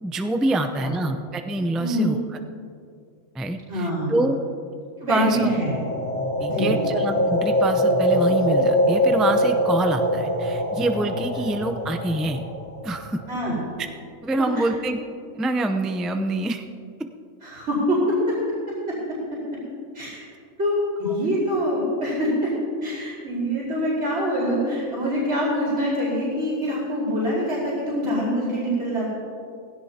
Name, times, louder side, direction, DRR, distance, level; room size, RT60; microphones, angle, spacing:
voice 1, 0.0-2.2 3.3-4.4 5.1-5.5 6.4-12.4 12.8-13.2 14.2-15.0 15.3-16.6, right 2 dB, ahead, 6 dB, 0.3 m, -26 dB
voice 2, 1.8-2.2 3.7-4.3 5.0-5.7 6.5-6.7 13.3-13.6 14.4-14.6 17.4-18.4 18.9-19.2 19.9-20.2 20.6-22.5 22.8-29.1, equal, 65° right, -8 dB, 4.8 m, -25 dB
sound 1, 5.2-13.3, equal, 30° left, 2.4 m, -23 dB
19.5 x 16.5 x 2.8 m, 2.4 s
omnidirectional pair, 1.3 m